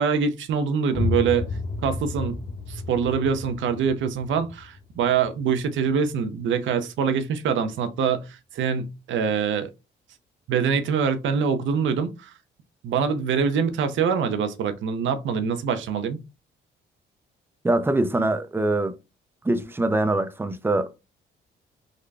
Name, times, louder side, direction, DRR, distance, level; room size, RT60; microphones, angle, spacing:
voice 1, 0.0-1.4 1.8-2.4 2.7-9.7 10.5-12.3 12.8-16.2, right 6 dB, 75° right, 0.7 m, -24 dB
sound 1, 0.9-6.5, left 3 dB, 35° left, 0.7 m, -32 dB
voice 2, 17.6-18.9 19.4-21.0, right 2 dB, 10° right, 0.5 m, -23 dB
3.8 x 2.2 x 3.3 m
cardioid pair, 90°, 20 cm